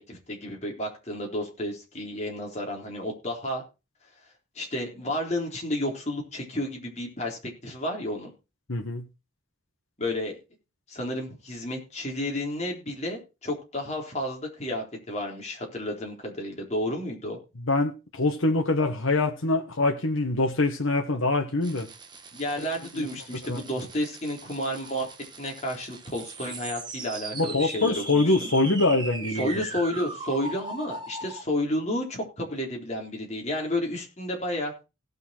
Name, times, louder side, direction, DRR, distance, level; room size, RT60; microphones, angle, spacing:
voice 1, 0.0-3.6 4.6-8.3 10.0-10.4 10.9-17.4 22.3-25.1 25.4-28.5 29.4-34.7, left 1 dB, 35° left, 3.9 m, -31 dB
voice 2, 8.7-9.0 17.7-21.9 23.0-23.1 23.5-23.6 27.3-29.6, left 2 dB, 80° left, 1.4 m, -24 dB
sound 1, 21.6-31.4, right 3 dB, 20° right, 1.3 m, -40 dB
17.0 x 6.7 x 4.5 m
head